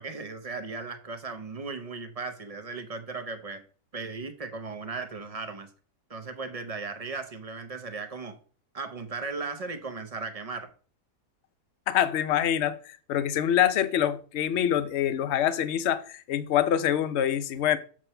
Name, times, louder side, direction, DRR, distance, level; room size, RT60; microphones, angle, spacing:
voice 1, 0.0-3.6 3.9-5.7 6.1-8.4 8.7-10.7, right 4 dB, 35° right, 0.6 m, -36 dB
voice 2, 11.9-17.8, left 10 dB, 60° left, 0.8 m, -25 dB
7.4 x 4.6 x 5.6 m
omnidirectional pair, 1.7 m